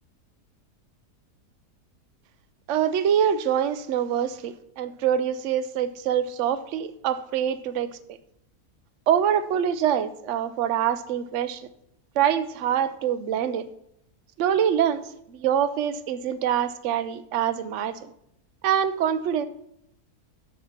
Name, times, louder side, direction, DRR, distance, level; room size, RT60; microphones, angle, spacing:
voice 1, 2.7-8.0 9.1-11.6 12.2-13.7 14.4-18.0 18.6-19.4, right 9 dB, 60° right, 12 dB, 0.9 m, -25 dB
11.5 x 4.3 x 7.2 m, 0.76 s
omnidirectional pair, 1.7 m